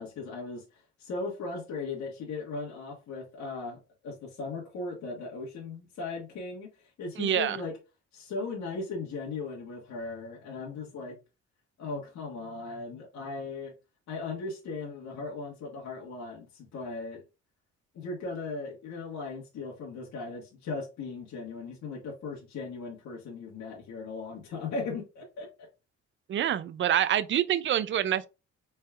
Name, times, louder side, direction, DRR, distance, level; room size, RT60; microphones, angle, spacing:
voice 1, 0.0-7.8 8.1-11.2 11.8-13.7 14.1-17.2 17.9-25.7, left 3 dB, 65° left, 1.5 m, -38 dB
voice 2, 7.2-7.6 26.3-28.3, right 10 dB, 40° right, 0.4 m, -26 dB
4.4 x 3.4 x 2.4 m
cardioid pair, 90°, 30 cm